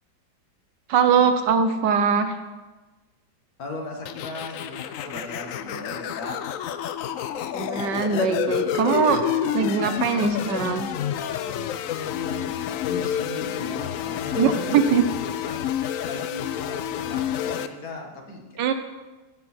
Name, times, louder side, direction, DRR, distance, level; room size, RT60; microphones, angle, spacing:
voice 1, 0.9-2.4 7.5-9.2 9.5-10.9 14.3-15.1 18.6-18.7, right 6 dB, 80° right, 8 dB, 1.4 m, -21 dB
voice 2, 3.6-6.4 11.8-14.7 15.4-18.4, left 2 dB, 60° left, 1 dB, 2.0 m, -37 dB
sound 1, 4.1-17.7, left 10 dB, 75° left, 0.7 m, -29 dB
16.5 x 6.4 x 4.4 m, 1.2 s
omnidirectional pair, 1.9 m